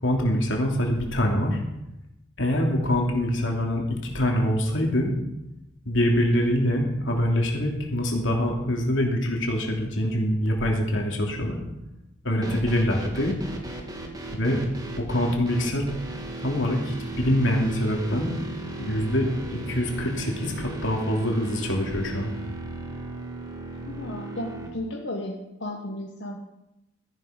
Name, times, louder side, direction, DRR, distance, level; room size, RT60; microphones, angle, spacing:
voice 1, 0.0-1.6 2.4-5.1 5.8-11.6 12.2-13.3 14.3-14.6 15.0-15.9 16.4-18.3 18.8-22.3, equal, 85° left, 1 dB, 2.9 m, -24 dB
sound 1, 12.4-24.7, right 2 dB, 20° right, 1.8 m, -36 dB
voice 2, 23.9-26.4, left 1 dB, 65° left, -1 dB, 1.4 m, -34 dB
14.5 x 10.5 x 5.2 m, 0.90 s
head